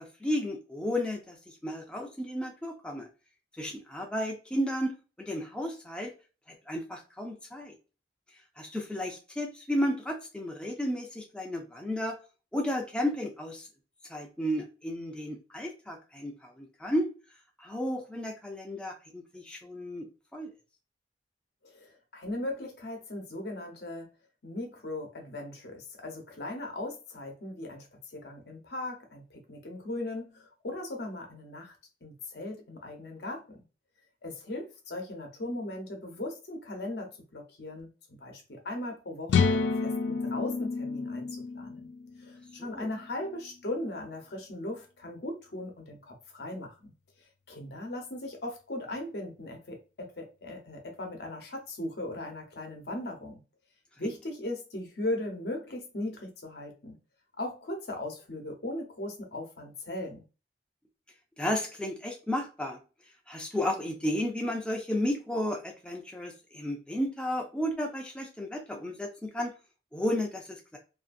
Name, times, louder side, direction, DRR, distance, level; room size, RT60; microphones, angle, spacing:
voice 1, 0.0-3.1 3.5-6.1 6.5-7.8 8.6-12.2 12.5-13.7 14.1-17.1 17.6-20.1 20.3-20.5 42.6-42.9 61.4-62.8 63.3-69.5 69.9-70.8, left 1 dB, 5° left, 1 dB, 0.4 m, -33 dB
voice 2, 21.6-24.1 24.4-31.7 32.0-33.6 34.2-41.9 42.2-46.9 47.5-53.4 54.0-57.0 57.4-60.2, left 1 dB, 70° left, 2 dB, 0.8 m, -38 dB
sound 1, 39.3-43.1, left 5 dB, 85° left, 0.3 m, -29 dB
2.6 x 2.5 x 2.5 m, 0.32 s
head